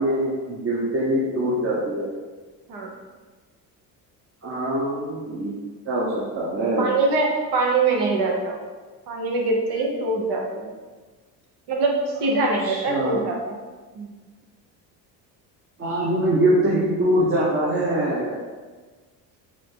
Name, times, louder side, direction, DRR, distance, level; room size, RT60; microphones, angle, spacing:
voice 1, 0.0-2.1 4.4-5.6 5.9-6.9 12.6-13.3 15.8-18.4, right 1 dB, 30° right, -6 dB, 0.9 m, -23 dB
voice 2, 6.8-8.6 9.1-10.7 11.7-13.5 13.9-14.1, right 3 dB, 70° right, 0 dB, 1.1 m, -23 dB
5.0 x 2.7 x 3.8 m, 1.4 s
cardioid pair, 105°, 40 cm